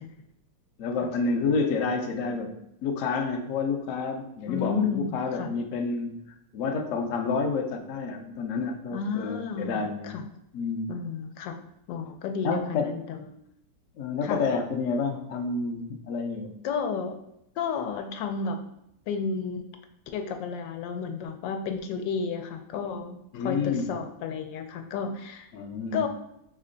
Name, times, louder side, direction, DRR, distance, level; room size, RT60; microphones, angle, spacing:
voice 1, 0.8-2.5 2.8-6.2 6.5-10.2 10.5-10.9 12.4-12.9 13.9-16.5 23.3-23.9 25.5-26.1, left 4 dB, 70° left, 4 dB, 0.7 m, -29 dB
voice 2, 4.5-5.5 8.9-10.2 10.9-11.6 11.9-13.3 14.2-14.4 16.6-17.1 17.6-18.6 19.1-19.7 20.1-25.5 25.9-26.1, left 6 dB, 85° left, 6 dB, 1.3 m, -32 dB
3.7 x 3.2 x 3.8 m, 0.79 s
omnidirectional pair, 1.9 m